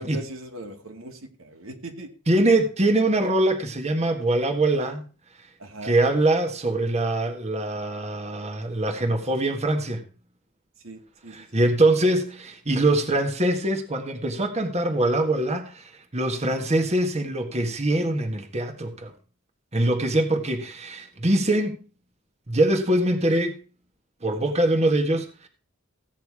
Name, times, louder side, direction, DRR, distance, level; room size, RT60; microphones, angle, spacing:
voice 1, 0.0-2.1 5.6-5.9 10.8-11.5 24.4-24.6, right 2 dB, 80° right, 2.4 m, -39 dB
voice 2, 2.3-5.0 5.8-10.0 11.3-19.1 19.7-21.8 22.5-23.6 24.2-25.5, right 1 dB, 30° right, 1.6 m, -23 dB
15.5 x 9.4 x 4.8 m
head